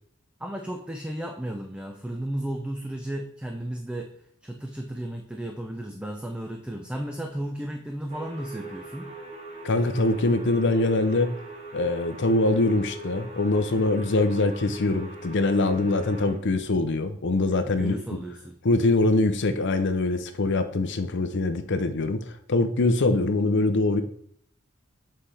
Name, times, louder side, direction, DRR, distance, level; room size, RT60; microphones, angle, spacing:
voice 1, 0.4-4.1 4.4-9.1 17.6-18.6, right 1 dB, 5° right, 3 dB, 0.4 m, -34 dB
sound 1, 8.1-16.3, right 2 dB, 30° right, 1.1 m, -41 dB
voice 2, 9.6-11.3 11.7-18.0 18.6-22.2 22.5-24.0, left 2 dB, 55° left, 9 dB, 0.6 m, -23 dB
7.5 x 4.3 x 3.3 m, 0.64 s
head